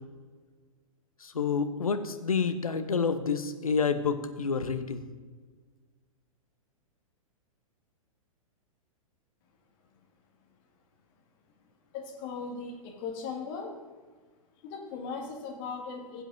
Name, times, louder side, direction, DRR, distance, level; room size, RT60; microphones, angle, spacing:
voice 1, 1.2-5.0, left 5 dB, 75° left, 9 dB, 0.8 m, -28 dB
voice 2, 11.9-13.7 14.6-16.2, left 5 dB, 40° left, 1 dB, 1.9 m, -38 dB
16.5 x 7.8 x 2.6 m, 1.5 s
figure-of-eight pair, 105°, 18 cm